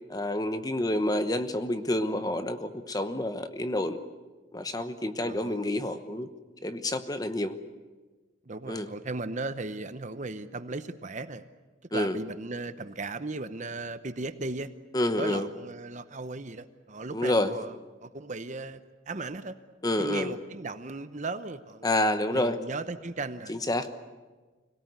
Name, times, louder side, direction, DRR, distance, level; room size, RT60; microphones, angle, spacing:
voice 1, 0.1-4.0 4.5-6.3 6.6-7.6 8.7-8.9 11.9-12.2 14.9-15.5 17.1-17.5 19.8-20.3 21.8-22.6 23.5-23.9, left 1 dB, 20° left, 9 dB, 1.0 m, -28 dB
voice 2, 5.2-5.8 8.5-11.4 11.9-14.7 15.2-19.6 20.0-21.9 22.3-23.6, right 3 dB, 40° right, 11 dB, 0.8 m, -36 dB
25.0 x 18.0 x 9.5 m, 1.3 s
head